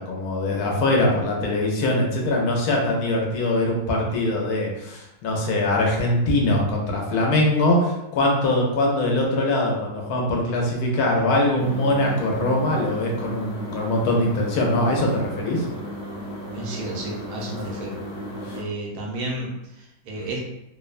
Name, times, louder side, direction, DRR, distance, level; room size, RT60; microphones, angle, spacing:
voice 1, 0.0-15.6 18.4-18.6, left 1 dB, 85° left, -1 dB, 1.1 m, -22 dB
sound 1, 11.6-18.6, equal, 60° left, 1.0 m, -35 dB
voice 2, 16.5-18.0 18.5-20.4, right 2 dB, 85° right, -1 dB, 1.2 m, -32 dB
2.9 x 2.1 x 2.4 m, 0.88 s
omnidirectional pair, 1.6 m